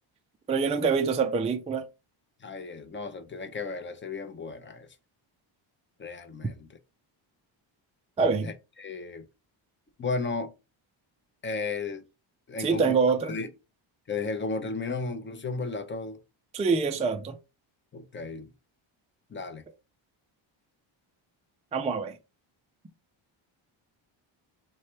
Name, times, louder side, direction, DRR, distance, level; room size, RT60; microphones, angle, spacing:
voice 1, 0.5-1.9 8.2-8.5 12.6-13.3 16.5-17.4 21.7-22.2, right 5 dB, 15° right, 0.3 m, -25 dB
voice 2, 2.4-4.9 6.0-6.7 8.4-9.2 10.0-10.5 11.4-12.0 12.5-13.0 13.3-13.5 14.1-16.2 17.9-18.5 19.3-19.6, left 3 dB, 25° left, 0.6 m, -34 dB
3.4 x 3.2 x 4.3 m
cardioid pair, 135°, 49 cm